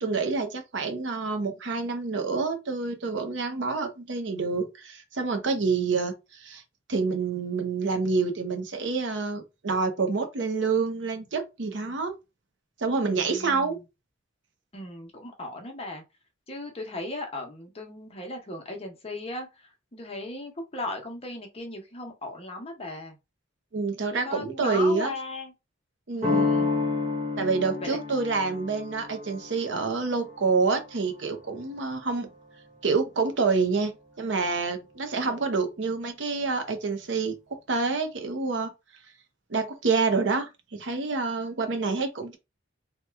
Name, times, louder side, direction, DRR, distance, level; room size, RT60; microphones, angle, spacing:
voice 1, 0.0-6.6 6.9-12.2 12.8-13.8 23.7-25.1 26.1-26.5 27.4-32.3 32.8-37.4 37.7-38.7 39.5-42.4, right 4 dB, 65° right, 0.7 m, -27 dB
voice 2, 13.0-13.8 14.7-16.0 16.5-23.2 24.1-25.5 26.1-26.7 27.8-28.0, left 2 dB, 30° left, 0.8 m, -37 dB
sound 1, 26.2-31.8, left 4 dB, 35° right, 0.8 m, -30 dB
2.9 x 2.2 x 3.3 m
head